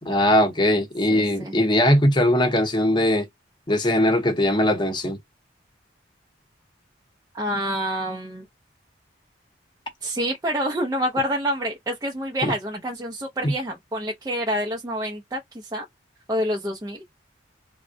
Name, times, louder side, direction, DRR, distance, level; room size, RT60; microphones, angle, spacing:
voice 1, 0.0-3.3 3.7-5.2 12.4-12.5 13.4-13.5, left 1 dB, 25° left, 0.7 m, -20 dB
voice 2, 1.1-1.6 7.3-8.4 10.0-15.4 15.7-15.9 16.3-17.0, equal, 20° right, 0.4 m, -27 dB
3.5 x 2.1 x 2.5 m
head